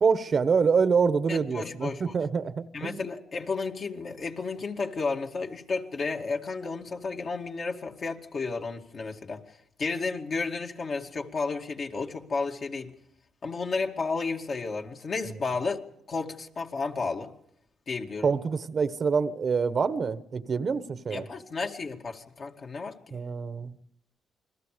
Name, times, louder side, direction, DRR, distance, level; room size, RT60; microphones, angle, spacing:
voice 1, 0.0-3.0 15.2-15.4 18.2-21.3 23.1-23.7, right 5 dB, 45° right, 1.1 m, -26 dB
voice 2, 1.3-2.1 2.7-9.4 9.8-12.9 13.4-15.8 16.1-17.3 17.9-18.3 21.1-23.2, left 4 dB, 45° left, 2.4 m, -32 dB
29.0 x 21.5 x 5.1 m
cardioid pair, 90°, 0 cm